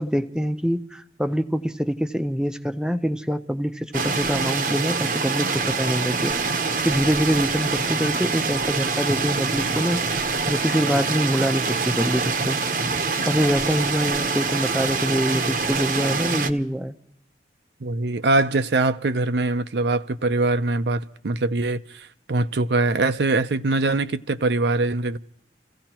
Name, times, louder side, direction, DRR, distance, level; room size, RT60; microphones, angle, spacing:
voice 1, 0.0-6.3 6.8-12.6 13.3-17.0, equal, 5° right, 0.6 m, -25 dB
sound 1, 3.9-16.5, right 4 dB, 50° right, 0.8 m, -25 dB
voice 2, 17.8-25.2, right 2 dB, 75° right, 0.6 m, -23 dB
30.0 x 16.0 x 3.0 m
head